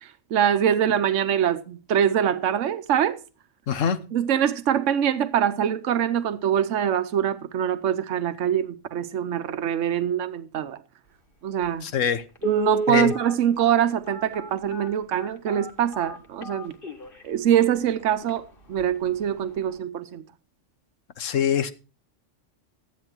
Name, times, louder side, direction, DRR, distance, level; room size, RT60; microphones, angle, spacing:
voice 1, 0.0-3.2 4.1-10.8 11.4-11.9 12.4-16.8 17.2-20.2, right 9 dB, 80° right, 1.1 m, -24 dB
voice 2, 3.7-4.0 11.8-12.2 12.9-13.1 21.2-21.7, left 8 dB, 85° left, 1.4 m, -23 dB
Telephone, 11.6-11.7 12.4-17.2 17.8-17.9 18.2-18.4 18.8-19.1 19.4-19.5, right 2 dB, 45° left, 1.8 m, -32 dB
13.0 x 10.0 x 4.4 m
omnidirectional pair, 1.3 m